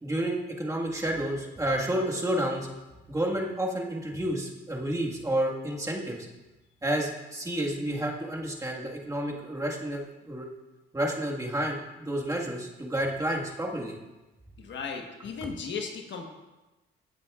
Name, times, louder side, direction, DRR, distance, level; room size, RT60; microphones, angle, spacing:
voice 1, 0.0-2.7 3.1-6.2 6.8-10.5 10.9-13.9, right 1 dB, 15° right, -2 dB, 1.8 m, -30 dB
voice 2, 14.6-16.3, left 5 dB, 65° left, 3 dB, 1.3 m, -36 dB
15.0 x 8.3 x 2.5 m, 1.1 s
cardioid pair, 90°, 20 cm